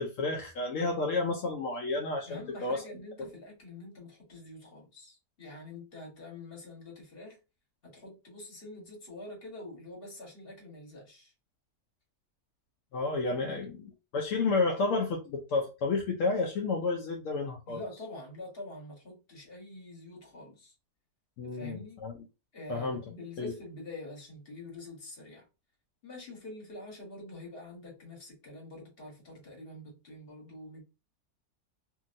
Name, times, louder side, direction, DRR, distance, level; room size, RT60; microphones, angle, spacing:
voice 1, 0.0-2.8 12.9-13.8 14.1-17.8 21.4-22.1 22.7-23.0 23.4-23.5, left 3 dB, 65° left, 0.8 m, -31 dB
voice 2, 2.3-7.4 7.8-11.3 13.4-13.7 17.7-20.7 21.5-22.0 22.5-25.5 26.0-30.8, left 2 dB, 40° left, 1.3 m, -46 dB
2.8 x 2.7 x 2.5 m
omnidirectional pair, 1.7 m